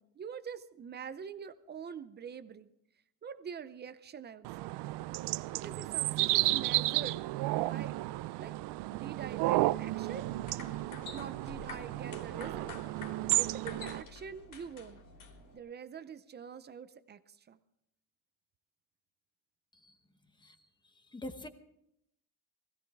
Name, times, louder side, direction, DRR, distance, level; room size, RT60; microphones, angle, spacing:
voice 1, 0.0-2.7 3.2-4.8 5.5-7.2 7.6-8.0 8.4-8.5 8.9-10.3 11.1-12.8 13.4-15.0 15.5-17.6, right 7 dB, 25° right, 13 dB, 0.6 m, -45 dB
sound 1, 4.4-14.0, right 19 dB, 80° right, 0.5 m, -33 dB
sound 2, 10.2-15.6, left 4 dB, 55° left, 3.2 m, -49 dB
voice 2, 21.1-21.5, left 1 dB, 10° left, 7 dB, 1.0 m, -43 dB
20.5 x 15.5 x 3.5 m, 0.76 s
cardioid pair, 160°, 40 cm